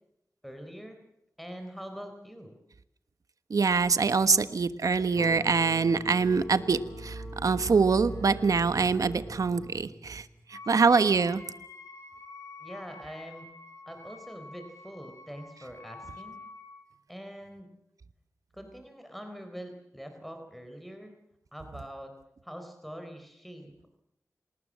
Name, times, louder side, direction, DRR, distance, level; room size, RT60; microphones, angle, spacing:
voice 1, 0.4-1.0 1.4-2.5 12.6-13.5 13.9-16.4 17.1-17.7 18.5-21.1 21.5-22.1 22.4-23.8, equal, ahead, 6 dB, 4.1 m, -44 dB
voice 2, 3.5-11.4, right 4 dB, 90° right, 13 dB, 1.3 m, -24 dB
sound 1, 5.1-10.6, left 2 dB, 80° left, 7.3 m, -46 dB
Wind instrument woodwind instrument, 10.5-16.8, left 3 dB, 65° left, 5.2 m, -47 dB
27.5 x 19.0 x 7.5 m, 0.80 s
wide cardioid pair, 75°, 6 cm